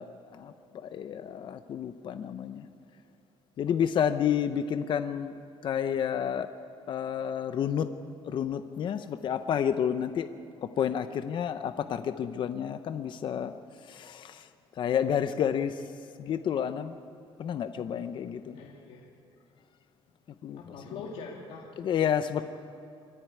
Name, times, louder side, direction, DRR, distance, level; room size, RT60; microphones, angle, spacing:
voice 1, 0.0-2.7 3.6-5.3 5.6-6.5 6.9-7.9 8.2-10.3 10.6-14.5 14.8-15.8 16.2-17.0 17.4-18.6 20.4-20.6 21.8-22.4, left 8 dB, 50° left, 10 dB, 0.7 m, -30 dB
voice 2, 18.5-19.1 20.6-21.6, left 4 dB, 75° left, -2 dB, 2.3 m, -42 dB
24.5 x 13.5 x 9.4 m, 2.6 s
cardioid pair, 135°, 10 cm